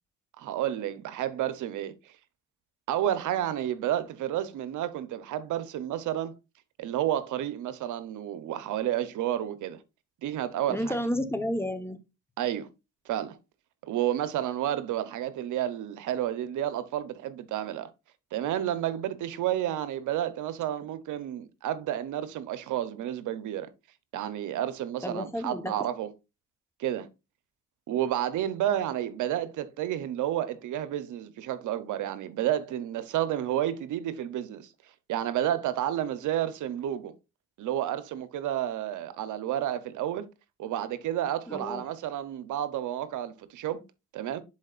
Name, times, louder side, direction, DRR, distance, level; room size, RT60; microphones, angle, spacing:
voice 1, 0.4-2.1 2.9-6.3 6.8-9.8 10.2-11.0 12.4-12.7 13.1-13.4 13.8-17.9 18.3-23.7 24.1-26.1 26.8-27.1 27.9-34.7 35.1-37.1 37.6-40.3 40.6-43.8 44.1-44.4, right 11 dB, 80° right, 0.8 m, -31 dB
voice 2, 10.7-12.0 25.0-25.7 41.5-41.8, equal, 10° left, 1.0 m, -31 dB
10.5 x 4.4 x 2.4 m
cardioid pair, 90°, 30 cm